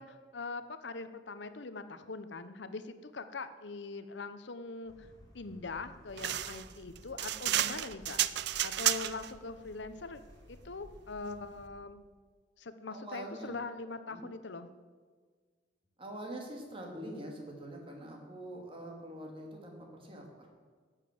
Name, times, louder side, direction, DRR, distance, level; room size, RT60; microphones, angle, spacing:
voice 1, 0.0-5.1 5.3-8.2 8.6-10.2 10.5-12.1 12.6-14.7, left 3 dB, 70° left, 11 dB, 0.8 m, -42 dB
sound 1, 4.9-11.8, equal, 20° left, 2.3 m, -56 dB
sound 2, 6.2-9.3, right 12 dB, 65° right, 0.5 m, -32 dB
voice 2, 12.9-13.6 14.1-14.3 16.0-20.5, right 1 dB, 30° right, 1 dB, 2.5 m, -44 dB
12.0 x 7.6 x 7.7 m, 1.6 s
head